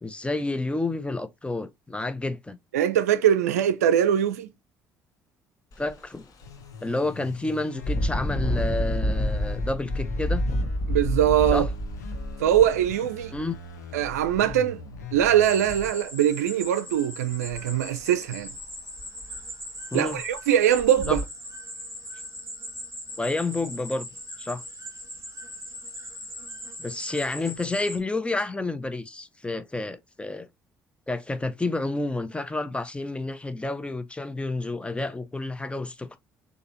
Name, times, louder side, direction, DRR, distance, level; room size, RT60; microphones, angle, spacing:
voice 1, 0.0-2.6 5.8-6.3 6.8-10.4 11.5-11.7 13.3-13.5 19.9-20.2 21.1-21.2 23.2-24.1 24.4-24.6 26.8-30.5 31.1-36.2, left 2 dB, 15° left, 0.8 m, -30 dB
voice 2, 2.7-4.5 10.9-11.7 12.4-13.3 13.9-14.8 15.1-18.5 19.9-21.2, right 10 dB, 80° right, 0.4 m, -22 dB
Engine, 5.7-5.9 6.4-6.5 7.8-13.6 14.4-14.5 15.0-15.7 17.5-17.6 18.0-18.1 18.6-18.7 19.0-19.5 20.1-20.2 20.8-21.2, equal, 45° left, 1.5 m, -28 dB
sound 1, 6.4-15.9, left 4 dB, 90° left, 0.9 m, -40 dB
sound 2, 15.4-28.0, equal, 35° right, 2.1 m, -40 dB
6.5 x 2.8 x 2.9 m
hypercardioid pair, 55°, 8 cm